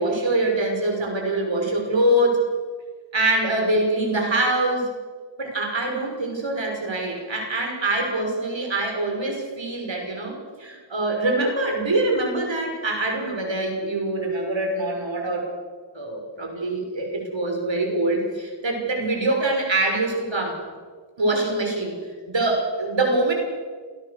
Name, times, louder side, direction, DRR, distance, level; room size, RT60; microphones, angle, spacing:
voice 1, 0.0-2.4 3.1-4.9 5.4-15.5 15.9-20.6 21.2-22.0 22.3-23.3, right 2 dB, 70° right, 2 dB, 5.9 m, -24 dB
27.5 x 17.5 x 6.7 m, 1.5 s
cardioid pair, 45°, 47 cm